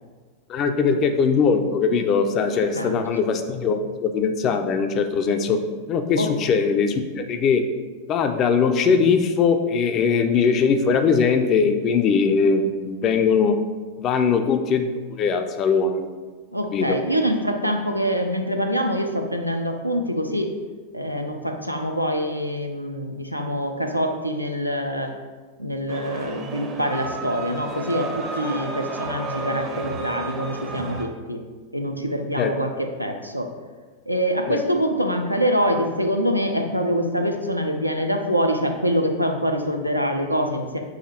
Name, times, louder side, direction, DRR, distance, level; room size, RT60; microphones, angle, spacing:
voice 1, 0.5-5.6 5.9-7.6 8.1-13.6 14.0-16.1 16.7-17.0 32.4-32.5 34.5-34.6, left 5 dB, 35° left, 7 dB, 0.4 m, -21 dB
voice 2, 16.5-20.5 20.9-25.1 25.6-31.4 31.7-33.5 34.1-40.8, equal, 90° right, 4 dB, 0.4 m, -25 dB
sound 1, 25.9-31.0, right 3 dB, 30° right, 0.6 m, -32 dB
4.8 x 2.4 x 4.2 m, 1.4 s
figure-of-eight pair, 90°, 0 cm